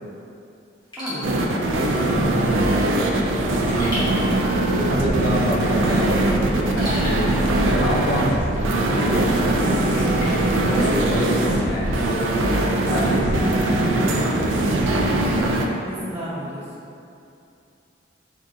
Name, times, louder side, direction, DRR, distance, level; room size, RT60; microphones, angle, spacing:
Raindrop / Drip, 0.8-11.6, equal, 20° left, 1.1 m, -40 dB
voice 1, 1.0-3.2 11.1-11.8 13.4-13.7 14.9-16.7, equal, 10° right, -11 dB, 1.1 m, -34 dB
sound 1, 1.2-15.7, right 1 dB, 85° right, 0.4 m, -21 dB
sound 2, 3.0-12.9, equal, 40° right, 0.9 m, -33 dB
voice 2, 4.7-7.3 7.6-10.2 10.6-11.4 11.6-12.1 12.9-14.7, equal, 60° left, -5 dB, 0.8 m, -28 dB
4.4 x 3.7 x 2.7 m, 2.6 s
head